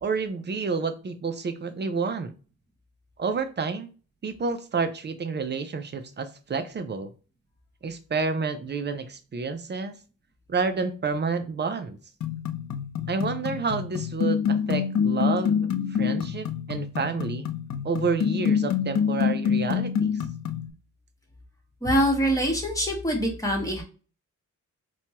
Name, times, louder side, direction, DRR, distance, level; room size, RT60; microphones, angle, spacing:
voice 1, 0.0-2.3 3.2-3.9 4.2-7.1 7.8-9.9 10.5-12.0 13.1-17.5 17.8-20.1, right 4 dB, 35° right, 8 dB, 0.4 m, -29 dB
sound 1, 12.2-20.7, left 7 dB, 60° left, 0.4 m, -26 dB
voice 2, 21.8-23.8, equal, 10° left, 0 dB, 1.1 m, -24 dB
4.3 x 2.2 x 2.8 m, 0.36 s
wide cardioid pair, 125°, 33 cm